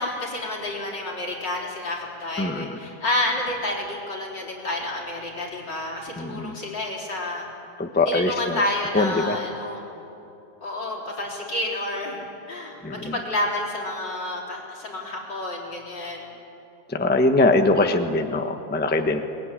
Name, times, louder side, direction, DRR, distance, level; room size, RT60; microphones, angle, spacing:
voice 1, 0.0-7.4 8.1-9.8 10.6-16.3, left 1 dB, 65° left, -2 dB, 4.8 m, -29 dB
voice 2, 2.4-2.8 6.2-6.5 7.8-8.6 8.9-9.4 12.8-13.1 16.9-19.2, left 2 dB, 5° left, 6 dB, 0.8 m, -22 dB
22.0 x 20.0 x 10.0 m, 2.9 s
omnidirectional pair, 2.1 m